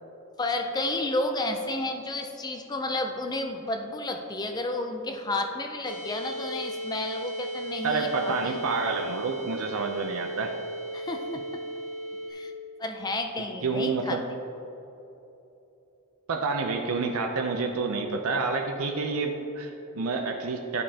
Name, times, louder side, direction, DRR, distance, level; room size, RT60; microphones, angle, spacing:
voice 1, 0.4-8.6 10.9-11.4 12.3-12.5 12.8-14.2, left 2 dB, 20° left, 4 dB, 0.4 m, -31 dB
sound 1, 5.8-12.3, right 1 dB, 85° left, 0.8 m, -36 dB
voice 2, 7.8-10.5 13.6-14.2 16.3-20.8, right 4 dB, 75° right, 4 dB, 0.5 m, -28 dB
11.0 x 5.3 x 2.8 m, 3.0 s
head